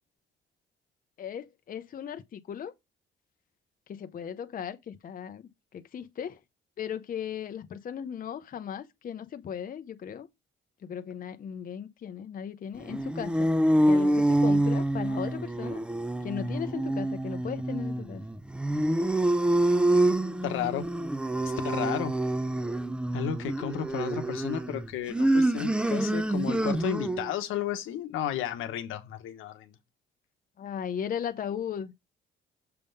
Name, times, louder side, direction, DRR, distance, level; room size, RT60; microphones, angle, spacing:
voice 1, 1.2-2.7 3.9-6.4 6.8-10.3 10.8-13.5 13.9-15.8 16.2-18.2 30.6-31.9, left 8 dB, 45° left, 0.6 m, -37 dB
sound 1, 12.8-27.3, right 1 dB, 5° right, 0.5 m, -26 dB
voice 2, 20.4-20.9 21.6-22.1 23.1-29.7, left 10 dB, 90° left, 1.2 m, -33 dB
6.8 x 3.5 x 5.4 m
cardioid pair, 90°, 20 cm